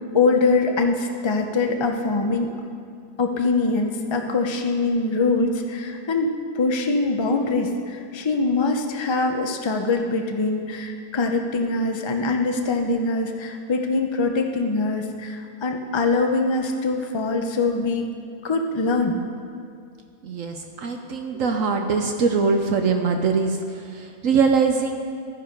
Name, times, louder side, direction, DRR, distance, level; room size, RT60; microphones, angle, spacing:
voice 1, 0.1-2.5 3.2-18.1 18.4-19.2, left 3 dB, 35° left, 3 dB, 0.4 m, -23 dB
voice 2, 20.2-23.6 23.9-25.0, right 5 dB, 65° right, 4 dB, 1.0 m, -22 dB
12.5 x 9.8 x 5.2 m, 2.3 s
omnidirectional pair, 1.6 m